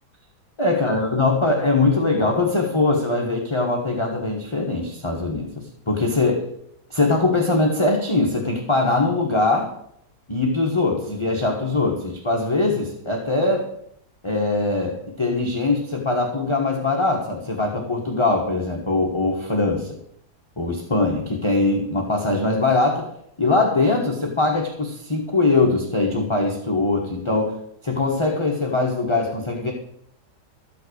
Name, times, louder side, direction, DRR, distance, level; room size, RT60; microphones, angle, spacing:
voice 1, 0.6-6.5 6.9-9.7 10.3-13.6 14.2-20.0 20.6-23.1 23.4-27.6 27.8-29.7, left 3 dB, 20° left, -1 dB, 1.4 m, -22 dB
13.5 x 5.9 x 8.0 m, 0.73 s
omnidirectional pair, 1.8 m